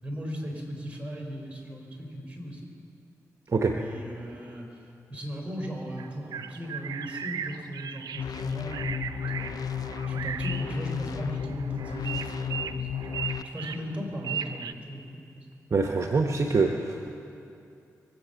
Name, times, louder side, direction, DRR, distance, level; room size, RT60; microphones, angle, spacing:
voice 1, 0.0-2.7 3.8-9.5 10.1-15.5, equal, 20° right, 0 dB, 4.5 m, -37 dB
sound 1, 6.0-14.7, right 8 dB, 80° right, 0.6 m, -37 dB
sound 2, 8.2-13.4, left 8 dB, 75° left, 0.5 m, -33 dB
voice 2, 15.7-17.1, right 4 dB, 50° right, 3 dB, 1.0 m, -25 dB
23.5 x 8.4 x 7.0 m, 2.7 s
supercardioid pair, 45°, 7 cm